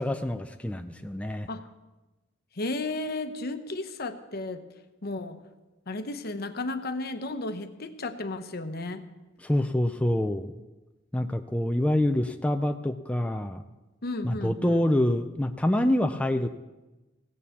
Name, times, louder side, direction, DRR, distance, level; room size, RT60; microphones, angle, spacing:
voice 1, 0.0-1.5 9.4-10.5 11.1-13.6 14.2-16.5, left 1 dB, 5° left, 6 dB, 0.4 m, -26 dB
voice 2, 2.6-4.6 5.0-5.4 5.9-9.1 14.0-14.8, left 2 dB, 55° left, 9 dB, 0.9 m, -33 dB
17.0 x 7.0 x 7.2 m, 1.1 s
head